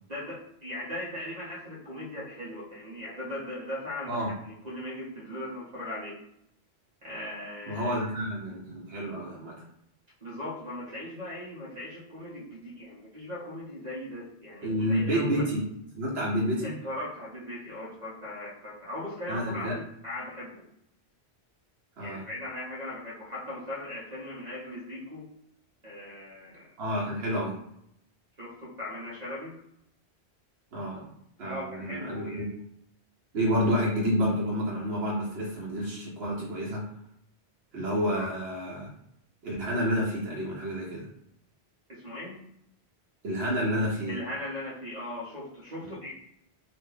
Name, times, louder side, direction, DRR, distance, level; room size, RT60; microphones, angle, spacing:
voice 1, 0.1-6.1 7.0-8.3 10.2-15.4 16.6-20.6 22.0-25.3 25.8-26.7 28.4-29.6 31.4-32.5 38.1-38.3 41.9-42.4 44.1-46.1, left 1 dB, 45° right, -6 dB, 0.9 m, -39 dB
voice 2, 7.7-9.6 14.6-15.6 15.9-16.8 19.3-19.8 22.0-22.2 26.8-27.5 30.7-31.1 31.4-32.4 33.3-36.8 37.7-38.9 39.4-41.1 43.2-44.2 45.8-45.9, equal, 70° right, -6 dB, 1.1 m, -29 dB
2.8 x 2.5 x 3.8 m, 0.75 s
omnidirectional pair, 1.1 m